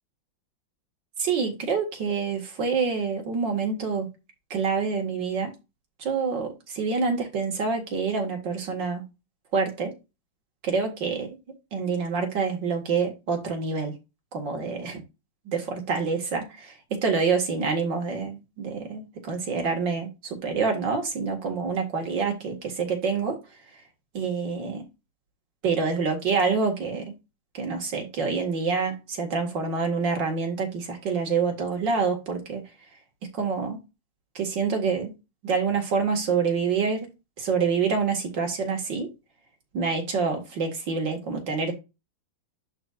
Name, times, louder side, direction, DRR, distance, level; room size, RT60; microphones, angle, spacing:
voice 1, 1.2-4.1 4.5-5.5 6.0-9.0 9.5-9.9 10.6-11.4 11.7-13.9 14.3-15.0 15.5-23.4 24.1-24.8 25.6-27.1 27.5-32.6 33.3-33.8 34.4-35.1 35.4-37.1 37.4-39.1 39.7-41.7, right 5 dB, 65° right, 2.7 m, -27 dB
11.5 x 4.4 x 2.5 m
omnidirectional pair, 2.1 m